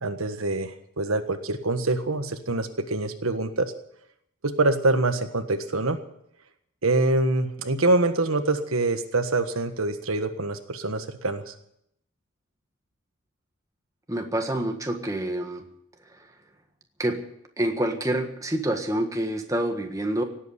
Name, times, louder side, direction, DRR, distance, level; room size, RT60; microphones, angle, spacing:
voice 1, 0.0-3.7 4.4-6.0 6.8-11.5, right 2 dB, 85° right, 8 dB, 1.5 m, -25 dB
voice 2, 14.1-15.6 16.1-16.2 17.0-17.2 17.6-20.2, right 1 dB, 15° right, 4 dB, 1.5 m, -27 dB
17.5 x 8.2 x 9.8 m, 0.74 s
head